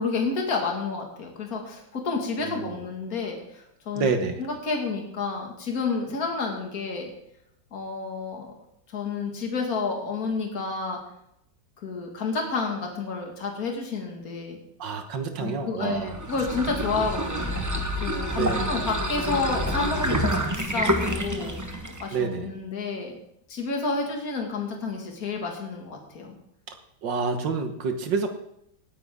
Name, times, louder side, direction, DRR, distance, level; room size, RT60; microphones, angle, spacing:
voice 1, 0.0-4.1 4.4-7.1 7.7-8.5 8.9-11.0 11.8-14.6 15.4-23.1 23.5-26.4, left 4 dB, 50° left, 1 dB, 2.5 m, -30 dB
voice 2, 2.4-2.8 3.9-4.4 14.8-16.2 18.3-18.7 22.1-22.5 26.7-26.8 27.0-28.3, right 5 dB, 70° right, 6 dB, 1.9 m, -28 dB
sound 1, 16.1-22.1, equal, 15° right, 0.8 m, -28 dB
18.5 x 9.4 x 3.7 m, 0.76 s
omnidirectional pair, 2.0 m